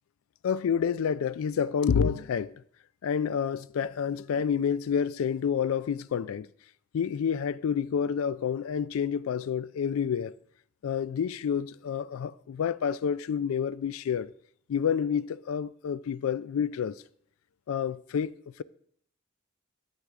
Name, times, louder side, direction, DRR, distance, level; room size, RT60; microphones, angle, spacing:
voice 1, 0.4-2.5 3.0-6.5 6.9-10.3 10.8-14.3 14.7-17.0 17.7-18.3, left 7 dB, 85° left, 0.3 m, -28 dB
10.0 x 7.9 x 3.6 m
head